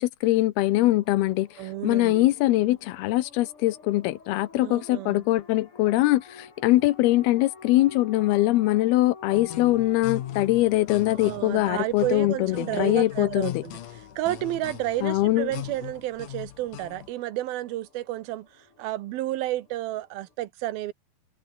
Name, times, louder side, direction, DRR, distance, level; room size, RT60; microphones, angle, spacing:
voice 1, 0.0-1.5 1.8-13.6 15.0-15.5, left 17 dB, 90° left, 2.9 m, -22 dB
sound 1, 0.9-20.3, left 4 dB, 35° left, 5.0 m, -50 dB
voice 2, 1.6-2.3 4.6-5.2 11.1-20.9, right 15 dB, 80° right, 2.8 m, -31 dB
homemade wall cubby guitar thingy, 9.3-17.1, left 12 dB, 65° left, 2.6 m, -39 dB
omnidirectional pair, 4.3 m